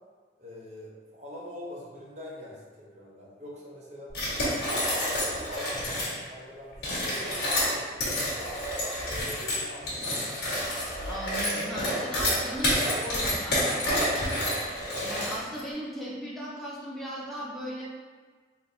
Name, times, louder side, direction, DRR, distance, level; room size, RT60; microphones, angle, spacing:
voice 1, 0.4-4.1 4.6-8.6 9.0-10.5 11.6-11.9, left 1 dB, 40° right, -5 dB, 1.0 m, -43 dB
sound 1, 4.1-6.1 6.7-15.6, left 1 dB, 65° left, 1.4 m, -29 dB
voice 2, 11.1-17.9, right 1 dB, ahead, -7 dB, 0.7 m, -38 dB
4.2 x 3.7 x 2.7 m, 1.5 s
head